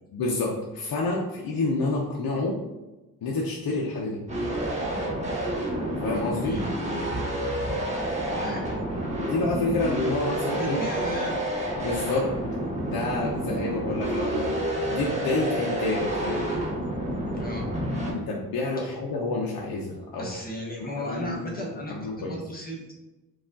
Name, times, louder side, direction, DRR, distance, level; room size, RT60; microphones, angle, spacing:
voice 1, 0.1-2.6 3.2-4.2 6.0-6.6 9.2-10.8 11.8-12.3 12.8-14.6 14.9-16.5 18.1-20.3 20.8-21.3 21.9-22.3, left 3 dB, 70° left, -2 dB, 0.7 m, -28 dB
sound 1, 4.3-18.1, right 1 dB, 20° right, 1.1 m, -29 dB
voice 2, 8.3-8.6 10.6-11.4 17.3-17.7 18.8-18.9 20.2-22.9, equal, 25° left, -2 dB, 0.9 m, -34 dB
4.8 x 2.4 x 3.7 m, 1.1 s
cardioid pair, 110°, 37 cm